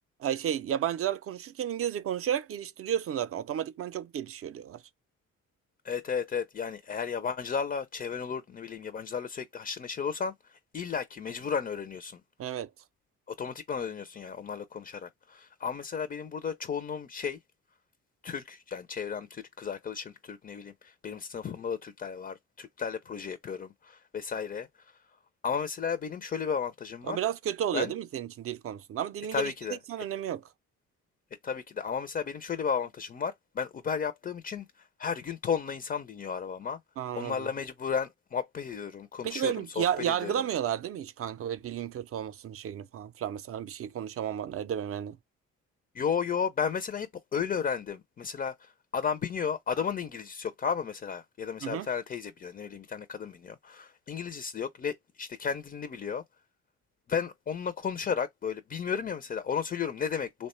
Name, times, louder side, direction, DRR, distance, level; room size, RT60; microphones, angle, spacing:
voice 1, 0.2-4.8 12.4-12.7 27.1-29.5 29.9-30.4 37.0-37.5 39.2-45.2 51.6-51.9, right 10 dB, 50° right, 0.5 m, -32 dB
voice 2, 5.8-12.2 13.4-17.4 18.2-25.0 25.4-27.2 27.7-27.9 29.3-29.8 31.4-36.8 37.2-40.3 45.9-56.2 57.1-60.5, left 6 dB, 30° left, 0.4 m, -34 dB
3.1 x 2.1 x 4.2 m
cardioid pair, 90°, 30 cm